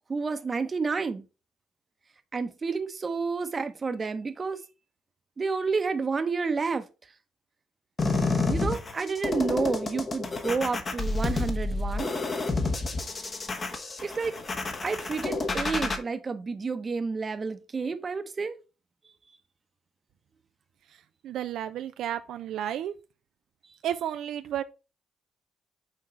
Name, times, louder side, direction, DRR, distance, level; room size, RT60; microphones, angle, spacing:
voice 1, 0.1-1.2 2.3-4.6 5.4-6.8 8.5-12.1 14.0-14.3 14.8-18.6, right 4 dB, 35° right, 0.9 m, -30 dB
sound 1, 8.0-16.0, left 3 dB, 35° left, 1.2 m, -29 dB
voice 2, 21.2-22.9 23.8-24.6, right 10 dB, 80° right, 0.4 m, -32 dB
6.2 x 3.8 x 4.4 m
cardioid pair, 90°, 0 cm